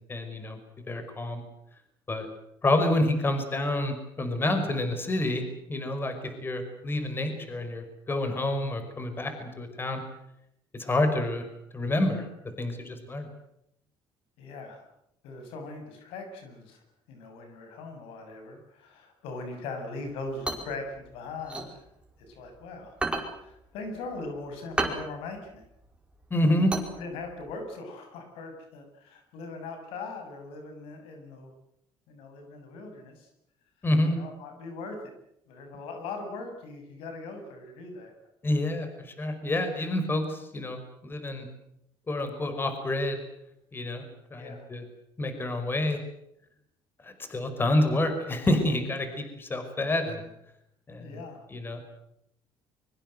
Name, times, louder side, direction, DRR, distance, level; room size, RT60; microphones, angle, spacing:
voice 1, 0.1-0.6 0.9-1.4 2.1-2.3 2.6-5.4 5.7-10.0 10.7-11.5 11.7-12.3 12.6-13.3 26.3-26.7 33.8-34.2 38.4-41.5 42.1-43.2 43.7-44.0 44.3-44.8 45.2-46.0 47.0-50.2 50.9-51.2 51.5-51.8, left 1 dB, 25° left, 8 dB, 5.4 m, -28 dB
voice 2, 14.4-14.8 15.2-16.8 17.1-21.8 22.3-23.0 23.2-25.7 26.9-31.5 32.1-33.3 34.1-35.0 35.5-38.1 44.4-44.7 51.0-51.5, left 3 dB, 85° left, 6 dB, 7.1 m, -40 dB
sound 1, 20.1-22.5 22.9-27.5, right 2 dB, 10° right, 5.0 m, -33 dB
24.5 x 23.5 x 7.9 m, 0.78 s
cardioid pair, 110°, 9 cm